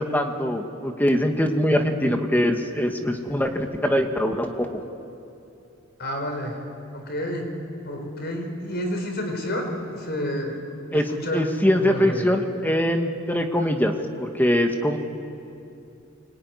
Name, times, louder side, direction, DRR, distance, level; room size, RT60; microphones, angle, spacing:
voice 1, 0.0-4.7 10.9-13.9 14.2-15.0, equal, 10° left, 4 dB, 1.6 m, -23 dB
voice 2, 6.0-6.6 6.9-7.5 7.8-10.6 11.1-11.4 11.8-12.3 13.6-13.7, equal, 55° left, 3 dB, 4.7 m, -29 dB
25.5 x 23.5 x 9.7 m, 2.7 s
head